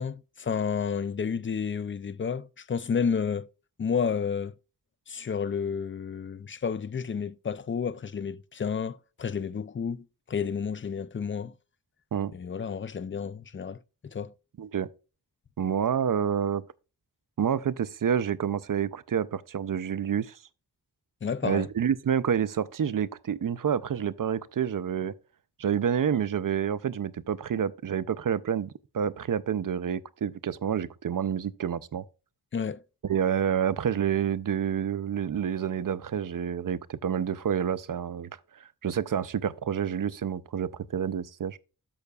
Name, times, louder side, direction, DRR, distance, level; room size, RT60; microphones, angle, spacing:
voice 1, 0.0-3.5 3.8-4.5 5.1-11.5 12.3-13.8 14.0-14.3 21.2-21.7 32.5-32.8, left 6 dB, 35° left, 0.4 m, -31 dB
voice 2, 14.6-14.9 15.6-16.6 17.4-20.4 21.4-25.1 25.6-32.0 33.0-41.6, right 8 dB, 60° right, 0.5 m, -28 dB
13.5 x 5.6 x 2.3 m
wide cardioid pair, 80°, 38 cm